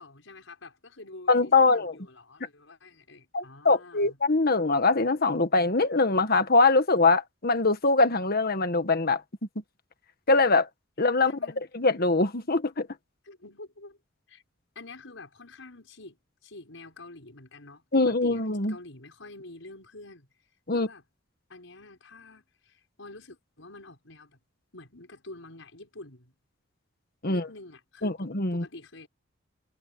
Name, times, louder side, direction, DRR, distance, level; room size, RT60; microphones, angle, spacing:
voice 1, 0.0-4.2 11.2-11.7 13.2-14.0 14.3-14.4 14.7-18.4 18.7-20.3 20.7-21.0 21.5-24.4 24.7-26.3 27.3-29.1, left 2 dB, 75° left, 6.6 m, -47 dB
voice 2, 1.3-1.9 3.3-9.2 10.3-10.7 11.0-11.3 11.7-12.9 17.9-18.8 20.7-20.9 27.2-27.5 28.0-28.6, left 3 dB, 50° left, 1.7 m, -23 dB
head